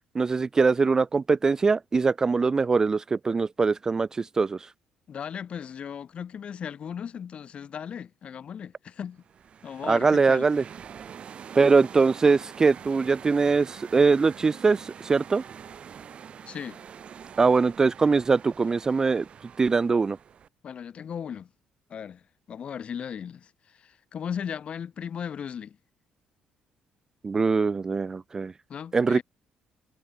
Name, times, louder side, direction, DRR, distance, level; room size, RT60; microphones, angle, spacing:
voice 1, 0.1-4.7 9.9-10.6 11.6-15.4 17.4-19.2 19.6-20.2 27.2-28.5 28.9-29.2, right 4 dB, 25° right, 0.3 m, -22 dB
voice 2, 5.1-9.2 9.6-10.4 16.4-16.8 20.6-21.5 21.9-22.2 22.5-25.8 28.7-29.2, left 8 dB, 45° left, 7.8 m, -37 dB
sound 1, 9.2-20.5, right 8 dB, 45° right, 7.3 m, -45 dB
cardioid pair, 120°, 3 cm